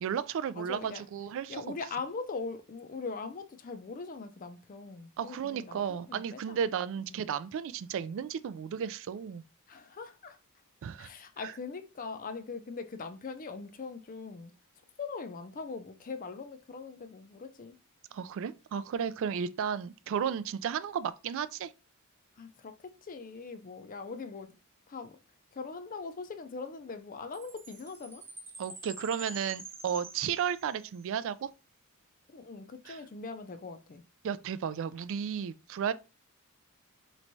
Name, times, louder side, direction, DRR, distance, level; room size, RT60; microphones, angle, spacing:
voice 1, 0.0-1.7 5.2-9.4 10.8-11.1 11.4-11.5 18.1-21.7 28.6-31.5 32.9-33.0 34.2-35.9, right 7 dB, 60° right, 0.3 m, -34 dB
voice 2, 0.5-1.1 1.5-6.7 7.0-7.2 9.7-10.4 11.0-14.5 15.0-17.8 22.4-24.5 24.9-25.2 25.5-28.2 32.3-34.0, left 4 dB, 40° left, 0.5 m, -41 dB
Chime, 27.3-31.0, right 3 dB, 10° right, 0.6 m, -47 dB
4.4 x 3.1 x 2.6 m
head